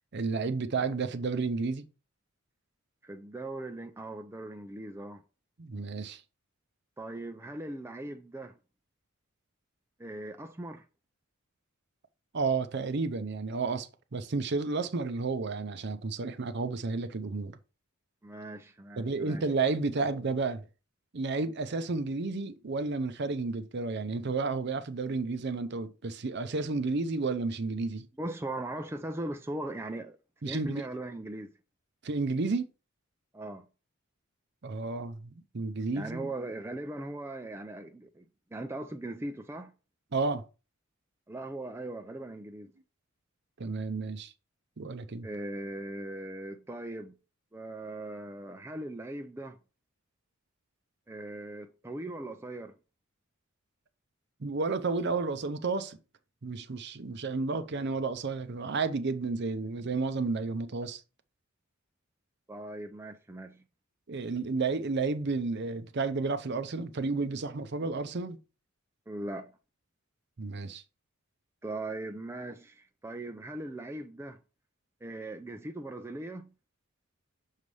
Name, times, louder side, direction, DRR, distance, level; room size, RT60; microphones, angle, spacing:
voice 1, 0.1-1.8 5.6-6.2 12.3-17.6 19.0-20.6 21.1-28.1 30.4-30.8 32.0-32.7 34.6-36.3 40.1-40.4 43.6-44.3 44.8-45.3 54.4-56.0 56.4-61.0 64.1-68.4 70.4-70.8, right 3 dB, 55° right, 0.6 m, -31 dB
voice 2, 3.0-5.2 7.0-8.5 10.0-10.8 18.2-19.5 28.2-30.2 30.5-31.5 33.3-33.6 35.9-38.3 38.5-39.7 41.3-42.7 45.2-47.2 47.5-49.6 51.1-52.8 62.5-63.6 69.1-69.6 71.6-74.4 75.0-76.5, right 1 dB, 10° right, 0.4 m, -39 dB
6.4 x 3.2 x 5.3 m
head